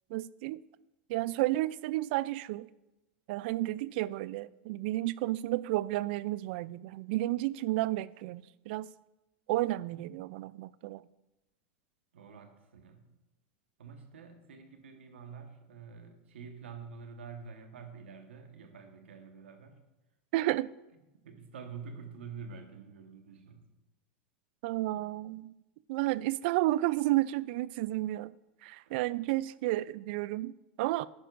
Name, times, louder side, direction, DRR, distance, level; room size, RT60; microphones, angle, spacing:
voice 1, 0.1-0.6 1.1-2.7 3.3-8.9 9.5-11.0 20.3-20.7 24.6-25.5 25.9-28.3 28.6-31.1, right 17 dB, 65° right, 0.3 m, -32 dB
voice 2, 12.1-13.1 13.8-19.8 21.1-23.7 28.9-29.0, right 5 dB, 90° right, 1.3 m, -47 dB
10.5 x 9.8 x 2.5 m
hypercardioid pair, 110°, 6 cm